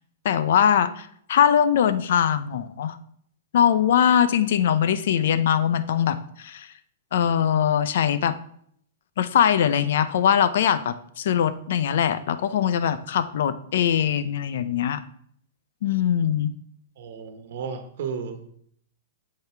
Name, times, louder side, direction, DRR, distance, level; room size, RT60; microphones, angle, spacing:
voice 1, 0.2-3.0 3.5-6.7 7.1-8.3 9.2-15.0 15.8-16.5, left 9 dB, 70° left, 14 dB, 0.6 m, -22 dB
voice 2, 17.0-18.5, right 6 dB, 65° right, 6 dB, 1.2 m, -34 dB
7.7 x 5.6 x 4.5 m, 0.65 s
hypercardioid pair, 140°, 0 cm